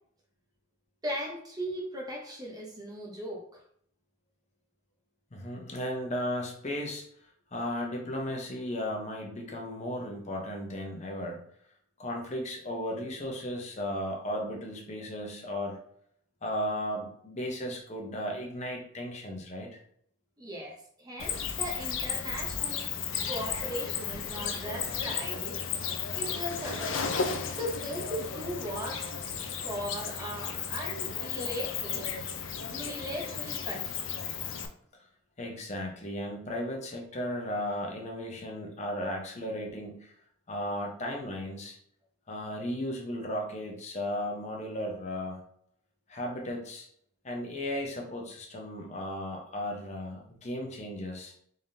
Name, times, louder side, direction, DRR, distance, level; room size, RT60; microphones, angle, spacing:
voice 1, 1.0-3.6 20.4-22.9 23.3-25.6 26.1-27.1 27.5-29.1 29.6-32.1 32.7-34.0, equal, 20° right, -1 dB, 0.7 m, -38 dB
voice 2, 5.3-7.0 7.5-11.4 12.0-15.8 16.4-19.7 35.4-40.1 40.5-41.8 42.3-45.4 46.1-46.9 47.2-51.3, left 1 dB, 35° left, 1 dB, 0.8 m, -35 dB
Cricket, 21.2-34.7, left 6 dB, 70° left, 0.5 m, -34 dB
3.8 x 3.5 x 2.7 m, 0.64 s
head